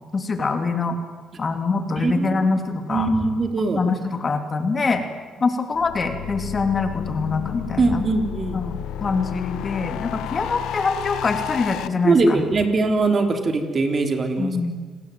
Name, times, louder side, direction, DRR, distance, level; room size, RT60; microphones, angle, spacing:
voice 1, 0.1-1.0 1.4-3.1 3.8-5.0 5.4-8.0 8.5-12.4 14.4-14.7, left 4 dB, 35° left, 7 dB, 3.1 m, -24 dB
voice 2, 2.0-2.5 2.9-3.8 7.8-8.6 12.0-14.6, right 3 dB, 40° right, 5 dB, 3.8 m, -21 dB
sound 1, 5.7-11.9, left 11 dB, 85° left, 1.1 m, -31 dB
28.5 x 19.5 x 9.4 m, 1.4 s
cardioid pair, 90°, 0 cm